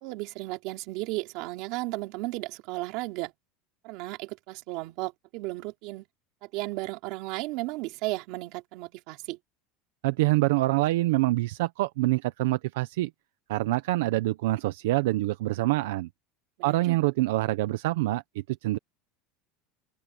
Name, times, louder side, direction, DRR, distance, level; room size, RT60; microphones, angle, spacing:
voice 1, 0.0-3.3 3.8-6.0 6.4-9.4 16.6-17.0, right 21 dB, 50° right, 3.3 m, -34 dB
voice 2, 10.0-13.1 13.5-16.1 16.6-18.8, right 18 dB, 80° right, 0.8 m, -26 dB
open air
supercardioid pair, 165°, 0 cm